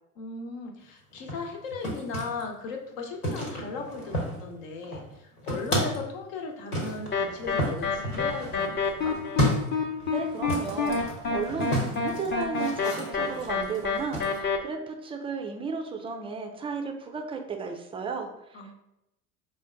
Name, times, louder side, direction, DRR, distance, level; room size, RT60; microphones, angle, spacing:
voice 1, 0.2-9.2 18.5-18.8, left 4 dB, 60° left, 3 dB, 1.0 m, -37 dB
sound 1, 1.1-2.4 3.2-4.6 4.8-6.1 6.7-14.4, equal, 85° left, 1.4 m, -32 dB
sound 2, 7.1-14.6, left 4 dB, 25° left, 0.7 m, -28 dB
voice 2, 10.1-18.8, right 5 dB, 15° right, 4 dB, 0.4 m, -34 dB
4.9 x 2.2 x 3.7 m, 0.86 s
figure-of-eight pair, 75°, 44 cm